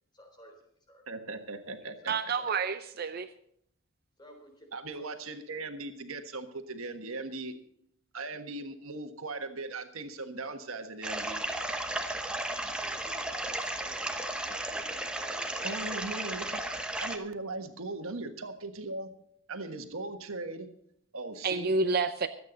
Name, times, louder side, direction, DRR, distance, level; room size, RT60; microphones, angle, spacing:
voice 1, 0.1-0.6 0.9-1.0 2.0-2.6 4.2-4.7 4.9-5.1 11.9-16.4, left 1 dB, 20° left, 2 dB, 3.9 m, -54 dB
voice 2, 1.1-2.1 4.7-7.5 8.1-11.5 15.6-16.6 17.0-19.1 19.5-20.7 21.1-21.7, right 3 dB, 80° right, 6 dB, 1.5 m, -39 dB
voice 3, 2.1-3.3 21.4-22.3, right 4 dB, 45° right, 10 dB, 0.6 m, -29 dB
sound 1, 11.0-17.2, right 1 dB, 5° right, 1.0 m, -34 dB
24.0 x 8.6 x 4.0 m, 0.70 s
head